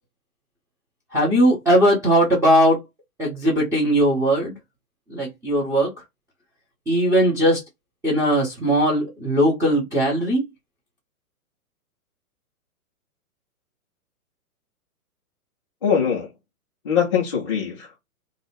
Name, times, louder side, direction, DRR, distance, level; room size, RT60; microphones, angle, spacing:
voice 1, 1.1-2.8 3.2-4.5 5.1-5.9 6.9-7.6 8.0-10.5, equal, 5° right, 0.7 m, -19 dB
voice 2, 15.8-16.3 16.8-18.0, left 7 dB, 25° left, 0.3 m, -22 dB
2.7 x 2.1 x 4.0 m
hypercardioid pair, 135°, 45 cm